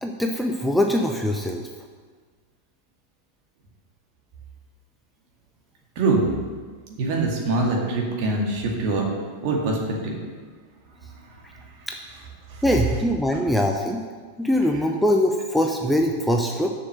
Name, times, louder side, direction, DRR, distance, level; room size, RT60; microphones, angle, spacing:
voice 1, 0.0-1.6 11.9-12.0 12.6-14.0 14.4-16.7, left 1 dB, ahead, 2 dB, 0.7 m, -22 dB
voice 2, 7.0-9.1 9.4-10.2 12.5-12.6, right 3 dB, 45° right, -1 dB, 2.2 m, -23 dB
7.3 x 6.6 x 7.9 m, 1.5 s
figure-of-eight pair, 90°, 0 cm